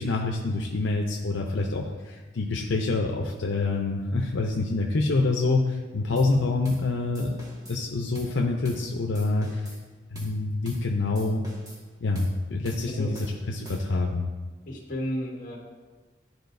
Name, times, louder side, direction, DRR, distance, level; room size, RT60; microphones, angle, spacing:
voice 1, 0.0-7.4 7.7-9.6 10.1-11.4 12.0-14.3, left 3 dB, 80° left, 0 dB, 0.6 m, -26 dB
sound 1, 6.2-6.4 6.6-6.9 7.1-7.8 8.1-8.4 8.6-8.9 9.1-9.8 10.2-10.4 10.7-10.9 11.2-11.8 12.2-12.4 12.7-12.9 13.1-14.1, equal, 20° right, 1.6 m, -43 dB
voice 2, 14.7-15.6, equal, 50° left, -2 dB, 1.7 m, -32 dB
12.5 x 4.7 x 2.6 m, 1.3 s
head